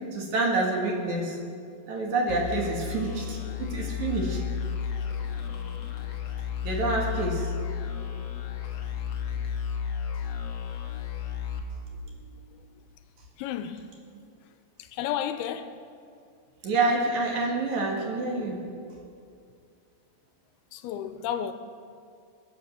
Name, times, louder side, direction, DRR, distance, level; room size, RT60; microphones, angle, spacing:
voice 1, 0.1-1.4 1.9-4.4 6.6-7.5 16.6-18.6, right 2 dB, 55° right, 3.0 m, -27 dB
sound 1, 2.3-12.6, left 7 dB, 65° left, 1.6 m, -33 dB
voice 2, 13.4-13.8 14.9-15.7 20.7-21.5, left 9 dB, 90° left, 2.7 m, -32 dB
22.0 x 8.4 x 7.3 m
omnidirectional pair, 4.5 m